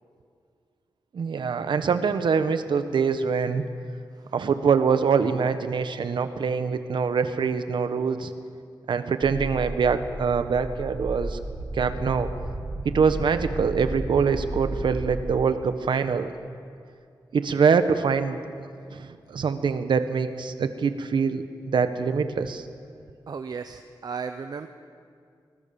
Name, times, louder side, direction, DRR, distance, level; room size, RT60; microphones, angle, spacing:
voice 1, 1.1-3.6 4.3-8.3 8.9-11.4 11.7-12.3 12.8-16.3 17.3-18.4 18.9-22.6, right 5 dB, 75° right, 10 dB, 1.4 m, -24 dB
sound 1, 9.2-15.4, right 2 dB, 30° right, 1.3 m, -34 dB
voice 2, 23.3-24.7, right 5 dB, 55° right, 8 dB, 0.9 m, -35 dB
27.0 x 20.5 x 7.2 m, 2.3 s
wide cardioid pair, 135°, 8 cm